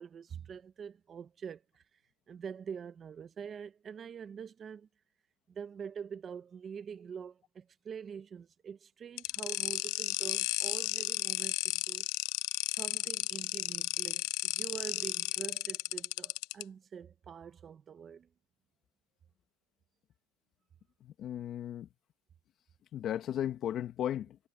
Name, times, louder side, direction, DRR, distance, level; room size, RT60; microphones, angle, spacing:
voice 1, 0.0-1.8 2.3-4.9 5.5-12.1 12.6-18.3, right 7 dB, 30° right, 1.4 m, -45 dB
sound 1, 9.2-16.6, left 24 dB, 65° left, 0.5 m, -33 dB
voice 2, 21.0-21.9 22.9-24.4, left 10 dB, 40° left, 2.0 m, -35 dB
supercardioid pair, 125°, 0 cm